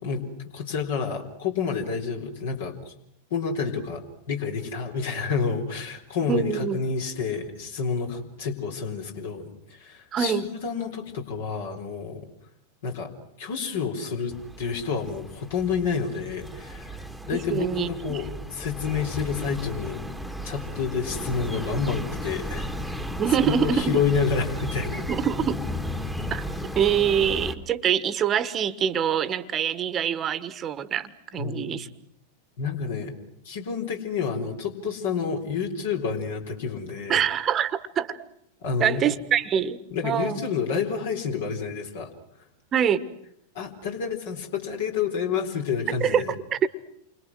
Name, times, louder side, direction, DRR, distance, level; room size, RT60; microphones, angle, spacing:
voice 1, 0.0-2.9 3.3-12.2 12.8-13.1 13.4-17.0 17.3-20.0 20.4-23.1 23.4-25.1 31.4-31.8 32.6-33.1 33.4-37.2 38.6-39.1 39.9-42.1 43.5-46.4, left 5 dB, 55° left, 3 dB, 4.0 m, -29 dB
voice 2, 6.2-6.8 10.1-10.4 17.3-18.2 23.2-24.0 25.1-25.6 26.3-26.4 26.7-31.9 37.1-38.2 38.8-40.4 42.7-43.1 46.0-46.2 46.5-46.7, right 8 dB, 25° right, 15 dB, 1.5 m, -25 dB
sound 1, 14.3-27.5, left 1 dB, ahead, 1.8 m, -34 dB
29.5 x 25.0 x 6.2 m, 0.72 s
figure-of-eight pair, 90°, 0 cm